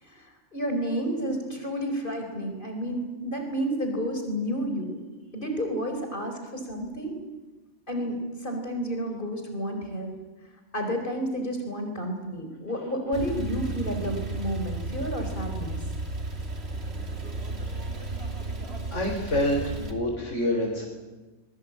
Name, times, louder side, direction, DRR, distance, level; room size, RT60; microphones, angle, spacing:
voice 1, 0.0-5.0 5.3-7.2 7.9-10.1 10.7-15.8, equal, 45° left, 4 dB, 4.6 m, -31 dB
Male speech man speaking / Car / Idling, 13.1-19.9, right 2 dB, 60° right, 3.2 m, -33 dB
voice 2, 18.9-20.8, left 1 dB, 85° left, -2 dB, 5.0 m, -27 dB
26.0 x 22.0 x 8.7 m, 1.2 s
omnidirectional pair, 1.2 m